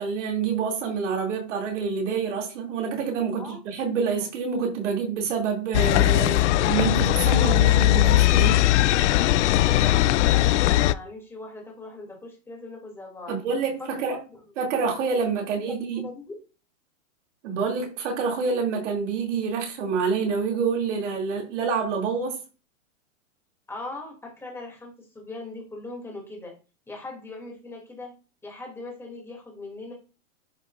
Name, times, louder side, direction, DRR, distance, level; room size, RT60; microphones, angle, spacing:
voice 1, 0.0-8.6 13.3-14.2 14.6-16.1 17.4-22.4, right 5 dB, 65° right, 2.8 m, -27 dB
sound 1, 5.7-10.9, left 15 dB, 65° left, 0.5 m, -19 dB
voice 2, 9.6-13.4 13.8-14.2 15.3-16.3 23.7-26.5 26.9-28.1 28.4-29.9, left 2 dB, 5° left, 2.7 m, -40 dB
10.5 x 5.4 x 2.5 m
supercardioid pair, 155°, 39 cm